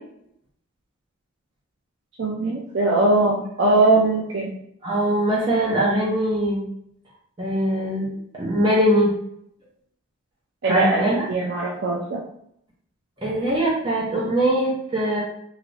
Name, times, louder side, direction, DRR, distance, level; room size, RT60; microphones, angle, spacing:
voice 1, 2.2-4.5 10.6-12.2, right 2 dB, 55° right, -3 dB, 0.4 m, -21 dB
voice 2, 4.8-6.6 7.4-8.1 8.3-9.1 10.7-11.3 13.2-15.2, right 1 dB, 25° right, -5 dB, 0.7 m, -22 dB
3.2 x 2.9 x 2.6 m, 0.72 s
head